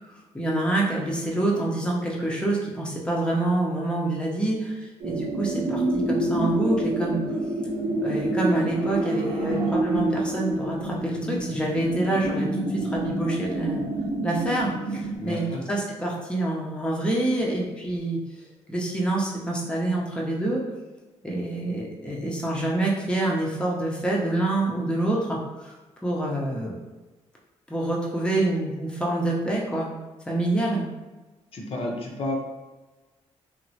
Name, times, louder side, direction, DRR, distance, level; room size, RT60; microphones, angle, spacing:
voice 1, 0.0-7.2 8.0-13.8 14.2-18.2 18.7-20.6 21.2-25.7 26.0-26.8 27.7-29.9 30.3-30.9, right 2 dB, 10° left, -3 dB, 0.6 m, -27 dB
sound 1, 5.0-15.2, right 1 dB, 75° right, 0.7 m, -27 dB
voice 2, 15.2-15.6 31.5-32.3, left 1 dB, 50° left, -1 dB, 0.6 m, -31 dB
2.9 x 2.1 x 2.7 m, 1.2 s
cardioid pair, 80°, 12 cm